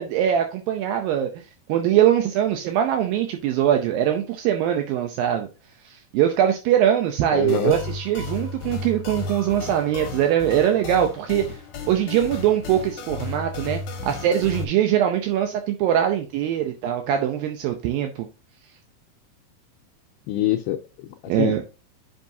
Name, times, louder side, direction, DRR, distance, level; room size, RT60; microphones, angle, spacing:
voice 1, 0.0-1.4 1.7-5.5 5.9-11.6 11.9-18.3 21.3-21.6, right 10 dB, 80° right, 2.4 m, -22 dB
voice 2, 7.3-7.8 20.3-21.6, left 13 dB, 85° left, 2.5 m, -25 dB
sound 1, 7.5-14.6, left 4 dB, 60° left, 2.5 m, -34 dB
10.5 x 5.5 x 2.7 m
omnidirectional pair, 4.3 m